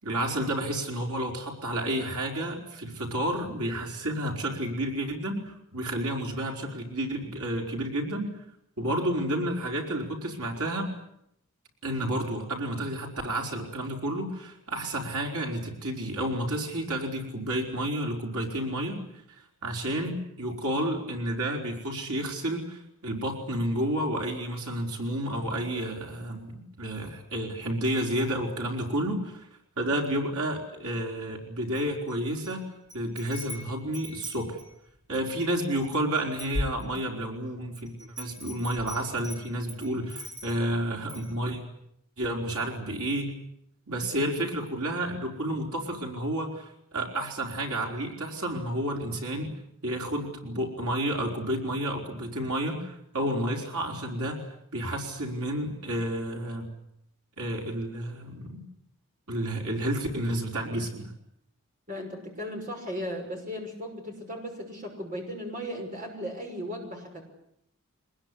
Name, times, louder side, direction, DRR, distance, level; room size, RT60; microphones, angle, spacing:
voice 1, 0.0-8.3 8.8-10.9 11.8-19.0 19.3-29.5 29.8-32.6 32.9-34.6 35.1-41.6 42.2-43.4 43.9-49.5 49.8-56.7 57.4-58.6 59.3-61.1, right 1 dB, 90° right, 1 dB, 4.8 m, -31 dB
Wind chime, 31.7-32.5 32.9-35.3 35.8-35.9 36.1-37.3 37.7-40.7 41.1-41.3, left 1 dB, 20° right, 4.4 m, -39 dB
voice 2, 61.9-67.3, equal, 35° right, 2 dB, 5.9 m, -36 dB
23.5 x 20.5 x 9.9 m, 0.76 s
head